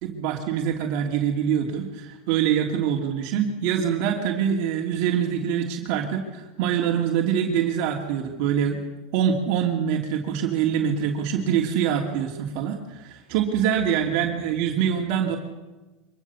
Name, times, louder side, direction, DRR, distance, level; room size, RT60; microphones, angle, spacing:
voice 1, 0.0-8.8 9.1-15.4, right 8 dB, 60° right, 1 dB, 2.8 m, -24 dB
24.5 x 21.5 x 7.1 m, 1.1 s
supercardioid pair, 145°, 0 cm